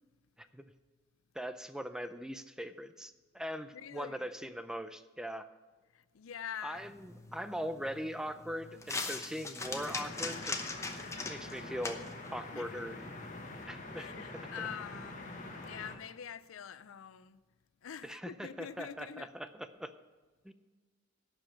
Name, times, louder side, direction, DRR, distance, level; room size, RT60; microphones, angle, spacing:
voice 1, 1.3-5.5 6.6-10.6 11.3-12.0 12.3-13.0 13.7-14.1 14.6-14.7 18.0-19.9 20.4-20.5, equal, 5° right, 0.4 m, -41 dB
voice 2, 3.7-4.3 6.1-6.9 12.5-12.7 13.9-15.2 15.6-17.4 17.8-19.3, left 8 dB, 80° left, 0.5 m, -45 dB
sound 1, 6.8-13.6, left 3 dB, 15° left, 0.8 m, -42 dB
sound 2, 9.6-16.0, left 2 dB, 40° left, 1.3 m, -45 dB
11.5 x 5.1 x 8.4 m
head